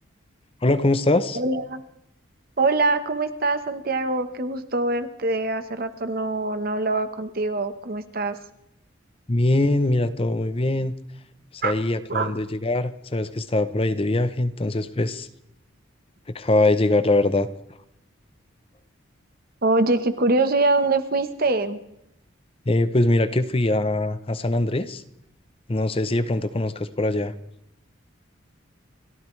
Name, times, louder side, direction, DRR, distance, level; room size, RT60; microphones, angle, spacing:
voice 1, 0.6-1.4 9.3-10.9 11.5-15.3 16.3-17.5 22.7-25.0 25.7-27.3, left 2 dB, 30° left, 12 dB, 0.7 m, -22 dB
voice 2, 1.3-1.8 2.6-8.4 11.6-11.8 12.1-12.3 19.6-21.8, right 2 dB, 45° right, 10 dB, 1.1 m, -24 dB
30.0 x 14.0 x 3.3 m, 0.81 s
head